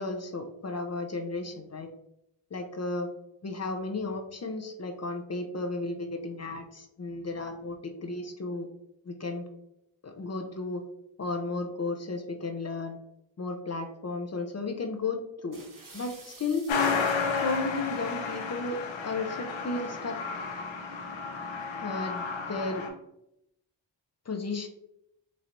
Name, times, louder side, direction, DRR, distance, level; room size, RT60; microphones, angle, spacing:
voice 1, 0.0-1.9 2.5-3.1 3.4-8.7 9.1-9.5 10.0-10.8 11.2-13.0 13.4-15.6 15.9-16.6 17.3-18.8 19.0-20.2 21.8-22.9 24.3-24.7, left 3 dB, 35° left, 4 dB, 0.6 m, -34 dB
sound 1, 15.5-17.6, right 3 dB, 45° right, 1.2 m, -50 dB
Truck, 16.7-22.9, left 5 dB, 90° left, 0.7 m, -32 dB
4.3 x 3.1 x 2.6 m, 0.81 s
cardioid pair, 65°, 45 cm